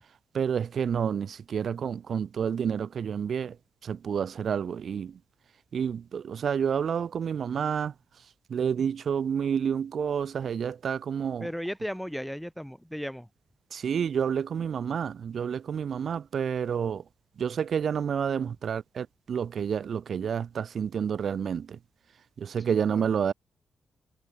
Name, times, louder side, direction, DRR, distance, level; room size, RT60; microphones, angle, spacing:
voice 1, 0.3-3.6 3.8-5.2 5.7-7.9 8.5-11.5 13.7-17.0 17.4-21.8 22.4-23.3, right 7 dB, 65° right, 1.1 m, -29 dB
voice 2, 11.4-13.3 22.9-23.1, equal, ahead, 2.6 m, -35 dB
cardioid pair, 60°, 0 cm